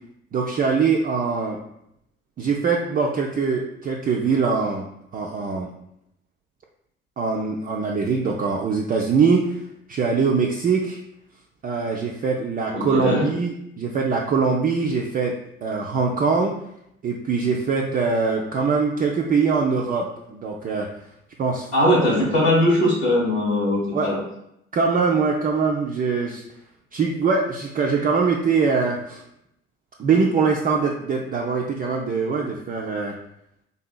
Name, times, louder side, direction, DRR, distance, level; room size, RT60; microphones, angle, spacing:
voice 1, 0.3-1.6 2.4-4.9 5.1-5.7 7.2-9.6 9.9-11.0 11.6-16.6 17.0-20.9 21.4-21.7 23.9-24.1 24.7-26.4 26.9-29.2 30.0-33.2, right 5 dB, 30° right, -1 dB, 0.4 m, -22 dB
voice 2, 12.7-13.3 21.7-24.2, left 1 dB, 90° left, -5 dB, 1.2 m, -20 dB
3.3 x 2.7 x 2.2 m, 0.78 s
hypercardioid pair, 45°, 31 cm